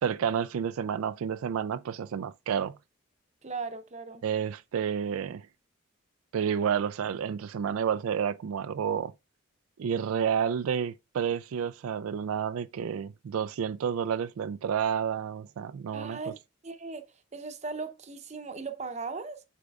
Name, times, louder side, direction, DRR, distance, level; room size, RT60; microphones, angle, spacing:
voice 1, 0.0-2.8 4.2-5.5 6.3-9.1 9.8-16.2, right 7 dB, 85° right, 0.3 m, -30 dB
voice 2, 3.4-4.2 15.9-16.4 16.6-19.4, right 4 dB, 35° right, 0.7 m, -38 dB
8.2 x 5.1 x 2.3 m
head